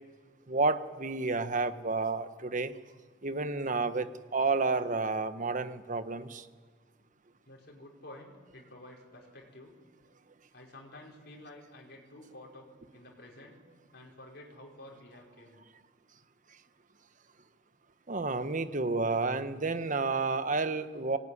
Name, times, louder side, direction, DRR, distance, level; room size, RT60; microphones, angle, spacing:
voice 1, 0.5-2.7 3.2-6.4 18.1-21.2, right 3 dB, 45° right, 10 dB, 1.2 m, -30 dB
voice 2, 7.5-9.7 10.5-12.7 12.9-13.6 13.9-15.6, left 1 dB, 60° left, -1 dB, 4.9 m, -51 dB
25.5 x 18.5 x 9.9 m, 1.5 s
head